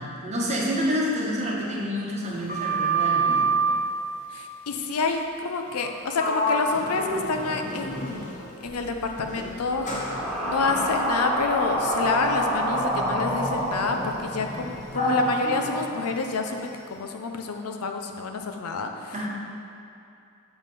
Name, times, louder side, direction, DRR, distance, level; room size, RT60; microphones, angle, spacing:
voice 1, 0.0-3.5 14.9-15.0 19.1-19.3, equal, 30° right, -3 dB, 1.0 m, -28 dB
Sliding door, 2.2-3.8 5.7-5.9 6.2-8.6 9.2-16.7, right 2 dB, 35° left, 1.0 m, -29 dB
voice 2, 4.3-8.3 8.6-9.9 10.4-19.2, left 4 dB, 80° left, 4 dB, 0.6 m, -28 dB
sound 1, 8.7-14.8, right 1 dB, ahead, 1.1 m, -28 dB
6.9 x 5.4 x 4.1 m, 2.6 s
head